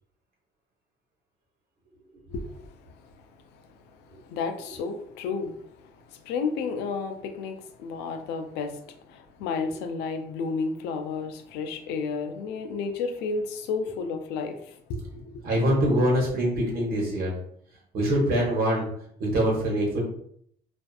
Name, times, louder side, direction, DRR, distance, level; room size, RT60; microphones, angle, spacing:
voice 1, 2.3-15.4, left 4 dB, 90° left, 6 dB, 0.4 m, -32 dB
voice 2, 15.4-17.3 17.9-18.9 19.2-20.0, right 1 dB, 60° right, -2 dB, 1.1 m, -24 dB
2.5 x 2.4 x 2.4 m, 0.67 s
cardioid pair, 110°, 17 cm